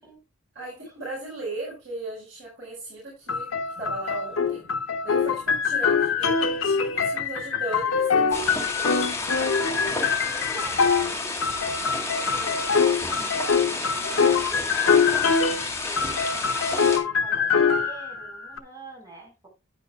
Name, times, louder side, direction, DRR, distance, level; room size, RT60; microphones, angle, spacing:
voice 1, 0.5-4.6 5.0-9.0 10.4-10.6, right 2 dB, 60° right, 5.1 m, -36 dB
sound 1, 3.3-11.2 11.4-15.7 16.0-18.6, left 5 dB, 80° left, 0.9 m, -24 dB
voice 2, 5.1-5.5 9.6-15.4 15.8-19.5, right 2 dB, 15° right, 4.8 m, -46 dB
sound 2, 8.3-17.0, left 3 dB, 15° left, 2.1 m, -31 dB
10.5 x 9.3 x 2.4 m
head